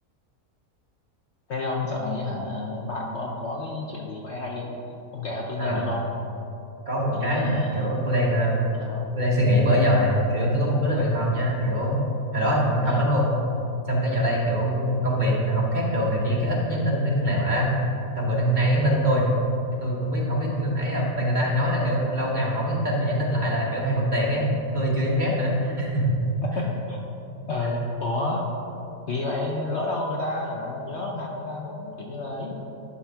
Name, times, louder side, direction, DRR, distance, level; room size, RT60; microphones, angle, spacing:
voice 1, 1.5-4.8 5.1-6.1 7.1-7.9 8.7-9.2 12.9-13.1 19.0-19.1 26.4-27.0 27.5-28.5 29.1-32.6, left 2 dB, 55° left, -1 dB, 0.9 m, -30 dB
voice 2, 5.6-5.9 6.9-8.7 9.2-12.0 12.3-13.3 13.9-17.8 18.1-19.3 19.8-26.4, equal, 30° right, -4 dB, 1.2 m, -23 dB
11.5 x 3.8 x 5.8 m, 2.9 s
omnidirectional pair, 1.6 m